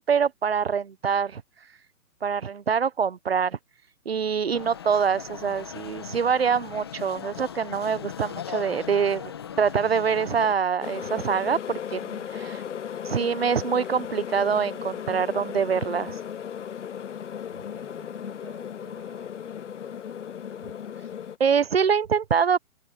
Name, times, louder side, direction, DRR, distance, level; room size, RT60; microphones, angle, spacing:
voice 1, 0.0-1.4 2.2-3.6 4.1-9.3 9.6-12.6 13.0-16.2 21.4-22.6, right 6 dB, 45° right, 0.9 m, -25 dB
sound 1, 4.5-10.5, left 8 dB, 15° left, 1.1 m, -38 dB
sound 2, 10.8-21.4, left 8 dB, 55° left, 0.5 m, -36 dB
voice 2, 17.7-20.2, right 11 dB, 10° right, 5.8 m, -55 dB
hypercardioid pair, 175°, 43 cm